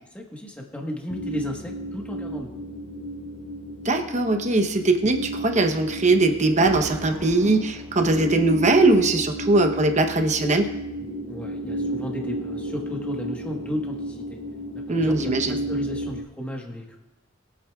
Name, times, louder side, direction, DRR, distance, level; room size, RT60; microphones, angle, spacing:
voice 1, 0.1-2.6 11.3-14.4 14.7-17.0, left 1 dB, 5° left, 0 dB, 1.4 m, -34 dB
sound 1, 1.1-16.2, right 1 dB, 25° left, 0.7 m, -33 dB
voice 2, 3.8-10.7 14.9-15.6, right 2 dB, 35° right, 5 dB, 1.0 m, -20 dB
Explosion, 6.6-8.7, equal, 15° right, 1.6 m, -41 dB
22.0 x 8.5 x 2.4 m, 0.98 s
head